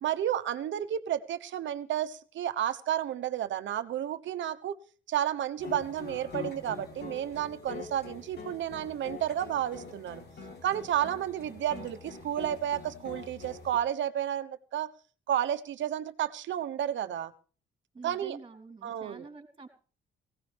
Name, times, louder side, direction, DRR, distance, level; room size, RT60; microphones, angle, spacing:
voice 1, 0.0-4.8 5.1-10.2 10.6-14.9 15.3-17.3 18.0-18.4 18.8-19.3, right 11 dB, 70° right, 10 dB, 1.1 m, -31 dB
sound 1, 5.6-13.8, left 5 dB, 55° left, 3.6 m, -44 dB
voice 2, 17.9-19.7, right 4 dB, 25° right, 4 dB, 4.0 m, -47 dB
18.5 x 17.0 x 3.5 m, 0.41 s
cardioid pair, 90°, 20 cm